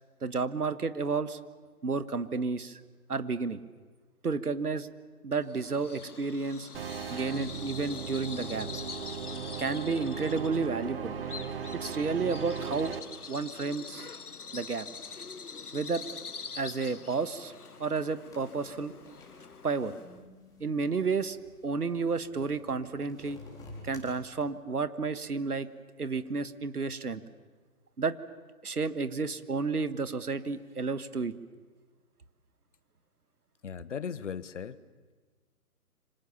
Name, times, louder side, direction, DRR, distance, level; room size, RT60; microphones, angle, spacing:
voice 1, 0.2-1.4 1.8-2.8 3.1-3.6 4.2-4.9 5.2-6.7 7.1-8.7 9.6-11.2 11.7-13.0 13.3-14.1 14.5-14.9 15.7-16.0 16.5-17.5 17.8-18.9 19.6-19.9 20.6-21.4 21.6-23.4 23.8-25.7 26.0-27.2 28.0-28.1 28.6-31.3, right 4 dB, 75° right, 14 dB, 1.6 m, -31 dB
Bird vocalization bird call bird song, 5.4-20.2, left 5 dB, 75° left, 1.3 m, -45 dB
sound 1, 6.7-13.0, right 7 dB, 40° right, 1.6 m, -38 dB
sound 2, 18.3-24.1, left 2 dB, 10° left, 4.2 m, -52 dB
voice 2, 33.6-34.8, left 7 dB, 50° left, 17 dB, 1.2 m, -37 dB
27.5 x 25.5 x 7.1 m, 1.4 s
figure-of-eight pair, 140°, 45 cm